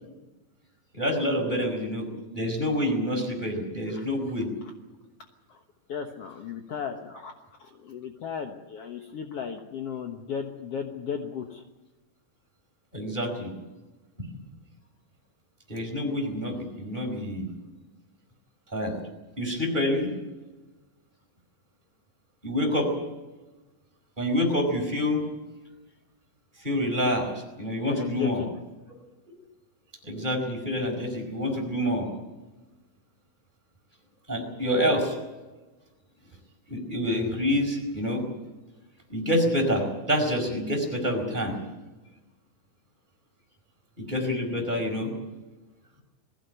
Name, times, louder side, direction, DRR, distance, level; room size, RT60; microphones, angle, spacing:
voice 1, 0.9-4.5 12.9-13.5 15.7-17.5 18.7-19.0 19.4-20.1 22.4-22.9 24.2-25.2 26.6-27.3 27.6-28.4 30.0-32.1 34.3-35.1 36.7-38.2 39.1-41.6 44.0-45.1, equal, 10° right, 1 dB, 4.8 m, -27 dB
voice 2, 5.9-7.3 7.6-11.6 27.9-28.5, left 7 dB, 70° left, 4 dB, 1.4 m, -35 dB
21.0 x 16.0 x 9.2 m, 1.1 s
omnidirectional pair, 4.7 m